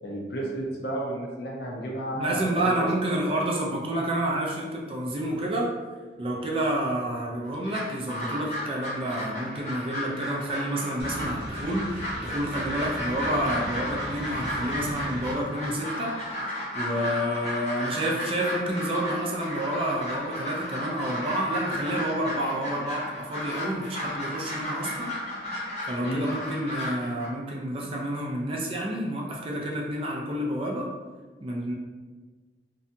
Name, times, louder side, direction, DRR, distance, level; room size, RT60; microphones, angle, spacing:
voice 1, 0.0-2.9 26.0-26.2, right 1 dB, 65° left, -2 dB, 0.5 m, -32 dB
voice 2, 2.1-5.7 6.2-16.1 16.7-25.1 25.9-30.9 31.4-31.7, right 1 dB, 30° right, -2 dB, 0.3 m, -29 dB
sound 1, 7.5-27.3, left 1 dB, 35° left, 0.8 m, -34 dB
sound 2, 11.0-15.4, equal, 70° right, 0.7 m, -38 dB
2.7 x 2.2 x 2.6 m, 1.4 s
head